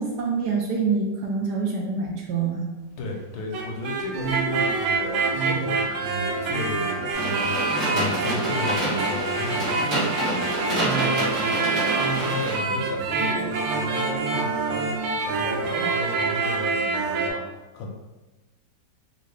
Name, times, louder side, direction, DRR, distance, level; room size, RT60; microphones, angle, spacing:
voice 1, 0.0-2.7, right 5 dB, 70° right, -1 dB, 1.0 m, -26 dB
voice 2, 3.0-6.0 6.4-7.6 7.9-10.1 10.6-17.9, left 2 dB, 75° left, 0 dB, 1.2 m, -34 dB
sound 1, 3.4-17.3, right 3 dB, 90° right, 1.3 m, -26 dB
sound 2, 7.1-12.6, right 1 dB, 45° right, 1.5 m, -28 dB
3.6 x 2.3 x 3.3 m, 1.2 s
omnidirectional pair, 2.0 m